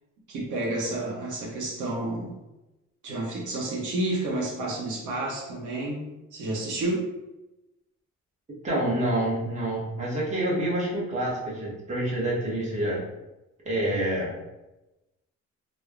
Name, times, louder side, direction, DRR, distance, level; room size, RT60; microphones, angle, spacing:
voice 1, 0.3-2.3 3.0-6.0 6.3-7.0, right 2 dB, 80° right, -3 dB, 0.7 m, -30 dB
voice 2, 8.6-13.0 13.6-14.3, right 1 dB, 25° right, -5 dB, 1.0 m, -27 dB
3.0 x 2.0 x 2.4 m, 0.99 s
cardioid pair, 90°, 30 cm